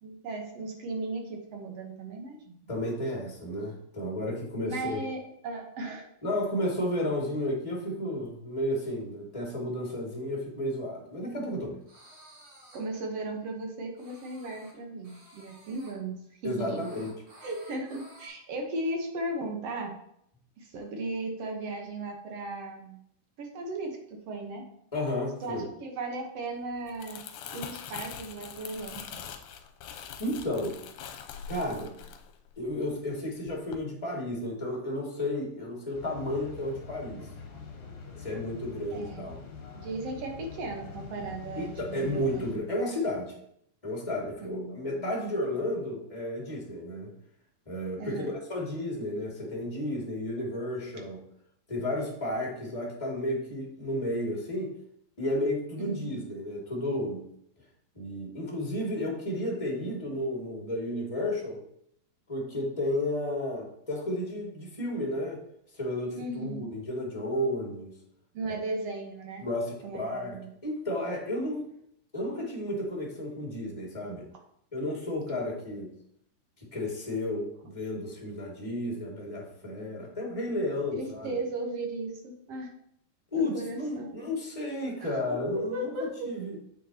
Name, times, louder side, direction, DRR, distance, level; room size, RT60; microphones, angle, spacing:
voice 1, 0.0-2.6 4.7-6.1 12.7-16.2 16.4-16.9 17.4-20.0 20.6-23.0 23.4-24.6 25.4-27.2 27.5-29.2 38.9-39.2 39.8-42.6 44.4-45.1 48.0-48.3 55.8-56.2 66.2-66.7 68.3-69.4 69.8-70.5 75.3-75.4 80.9-82.7 83.3-84.1 85.0-85.2 85.5-86.3, right 2 dB, 65° right, 2 dB, 1.6 m, -36 dB
voice 2, 2.7-5.0 6.2-11.8 16.4-17.1 24.9-25.7 30.2-30.8 31.5-31.9 32.5-37.3 38.2-39.4 41.5-43.3 43.8-47.1 47.6-51.2 51.7-54.7 55.2-57.2 57.9-61.6 62.3-65.4 65.7-67.9 69.4-71.7 72.1-74.3 74.7-75.9 76.6-81.3 83.3-86.5, left 1 dB, 10° left, -2 dB, 1.7 m, -32 dB
sound 1, 11.8-12.8 14.0-14.7 15.0-15.9 16.7-18.3, equal, 40° right, 3.7 m, -53 dB
Crumpling crinkling, 26.7-33.1 33.5-33.8, left 8 dB, 80° left, 2.3 m, -43 dB
sound 2, 35.9-42.5, left 4 dB, 55° left, 2.1 m, -44 dB
9.0 x 8.3 x 2.9 m, 0.71 s
omnidirectional pair, 4.2 m